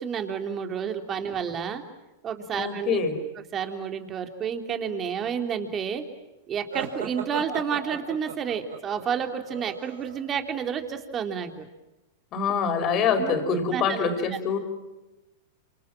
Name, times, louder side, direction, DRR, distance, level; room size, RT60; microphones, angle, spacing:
voice 1, 0.0-1.8 2.2-3.0 3.4-6.0 6.5-11.7 13.2-13.4 13.7-14.6, right 7 dB, 30° right, 6 dB, 3.3 m, -30 dB
voice 2, 2.5-3.2 12.3-14.6, left 5 dB, 40° left, 6 dB, 5.2 m, -25 dB
sound 1, 6.7-10.4, right 7 dB, 80° right, 4.2 m, -37 dB
28.5 x 26.5 x 7.6 m, 1.0 s
hypercardioid pair, 105°, 0 cm